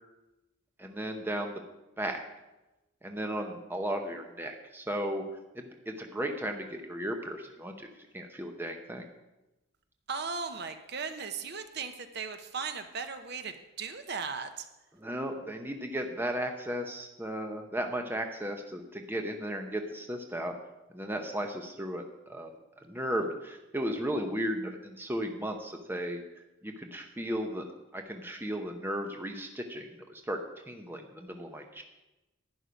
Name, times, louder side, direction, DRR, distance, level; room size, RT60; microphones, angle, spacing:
voice 1, 0.8-1.6 2.0-2.2 3.0-5.2 5.5-7.9 8.1-9.1 14.9-20.5 20.9-22.5 22.8-26.2 26.6-27.6 27.9-30.4 30.7-31.8, equal, 10° right, 4 dB, 0.8 m, -35 dB
voice 2, 10.1-14.7, right 5 dB, 50° right, 8 dB, 0.8 m, -37 dB
11.5 x 9.8 x 5.2 m, 1.0 s
head